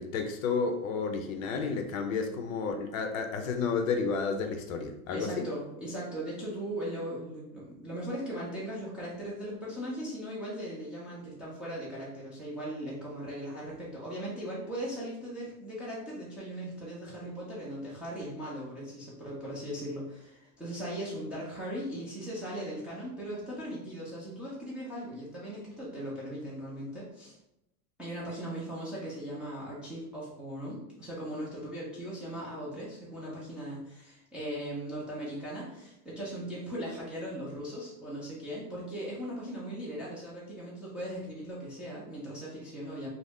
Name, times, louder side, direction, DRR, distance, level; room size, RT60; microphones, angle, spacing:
voice 1, 0.0-5.4, left 5 dB, 60° left, 5 dB, 0.6 m, -31 dB
voice 2, 5.1-27.3 28.0-43.1, equal, 5° right, -8 dB, 0.4 m, -38 dB
2.5 x 2.0 x 3.4 m, 0.82 s
hypercardioid pair, 125°, 45 cm